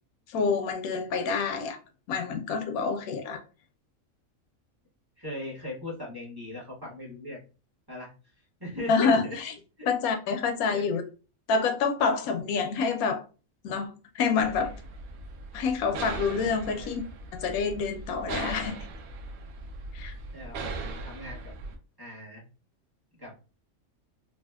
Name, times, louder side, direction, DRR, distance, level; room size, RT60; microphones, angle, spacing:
voice 1, 0.3-1.8 2.1-3.4 8.9-9.5 9.9-11.0 11.5-13.2 13.6-14.7 15.5-17.0 17.3-18.9 19.9-20.1, left 5 dB, 85° left, 1.1 m, -27 dB
voice 2, 5.2-7.4 7.9-8.1 8.6-9.4 9.8-9.9 10.7-10.8 11.6-11.7 16.7-16.9 20.3-21.5 22.0-22.4 23.2-23.6, left 1 dB, 15° right, 1.2 m, -38 dB
sound 1, 14.4-21.7, right 3 dB, 85° right, 1.1 m, -39 dB
3.4 x 2.4 x 2.3 m
omnidirectional pair, 1.5 m